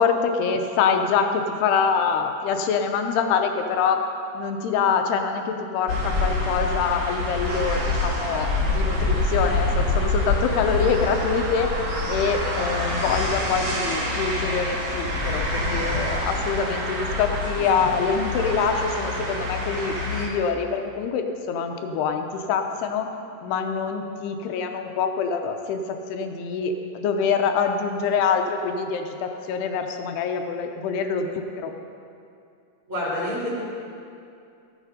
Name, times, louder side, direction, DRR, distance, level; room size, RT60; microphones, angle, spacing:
voice 1, 0.0-4.0 4.3-11.7 12.1-23.1 23.4-25.8 26.1-31.7, left 6 dB, 80° left, 5 dB, 2.5 m, -25 dB
sound 1, 5.9-20.3, left 2 dB, 50° right, 1.3 m, -26 dB
voice 2, 32.9-33.5, left 1 dB, 30° right, -8 dB, 3.7 m, -27 dB
14.5 x 10.0 x 5.0 m, 2.5 s
omnidirectional pair, 5.2 m